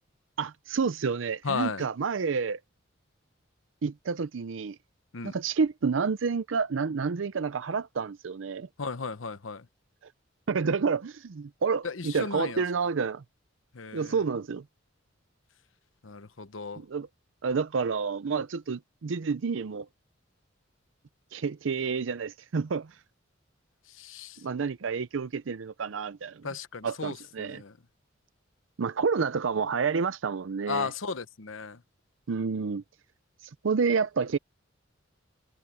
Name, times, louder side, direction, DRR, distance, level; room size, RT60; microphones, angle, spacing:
voice 1, 0.4-2.6 3.8-4.8 5.2-8.7 10.5-13.2 13.9-14.6 16.8-17.1 17.4-19.9 21.3-23.0 24.4-26.5 26.8-27.6 28.8-30.9 32.3-32.8 33.4-34.4, right 5 dB, 75° right, 0.5 m, -29 dB
voice 2, 1.4-1.8 5.1-5.3 8.8-9.7 11.8-12.6 13.7-14.2 16.0-16.8 23.9-24.4 26.4-27.7 30.7-31.8, left 5 dB, 85° left, 1.0 m, -35 dB
head